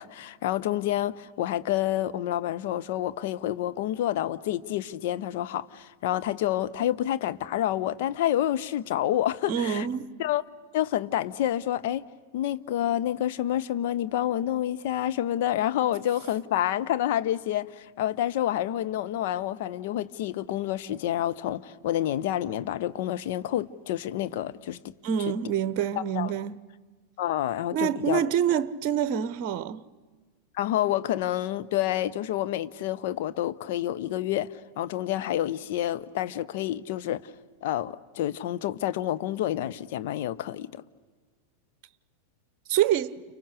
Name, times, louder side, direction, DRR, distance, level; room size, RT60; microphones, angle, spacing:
voice 1, 0.0-9.9 10.2-10.4 10.7-12.0 12.3-24.9 26.1-26.3 27.2-28.3 30.6-37.2 37.6-40.8, left 12 dB, 50° left, 0.9 m, -28 dB
voice 2, 9.5-10.1 25.0-26.6 27.7-29.8 42.7-43.1, right 9 dB, 40° right, 0.9 m, -26 dB
30.0 x 29.5 x 6.7 m
figure-of-eight pair, 90°, 0 cm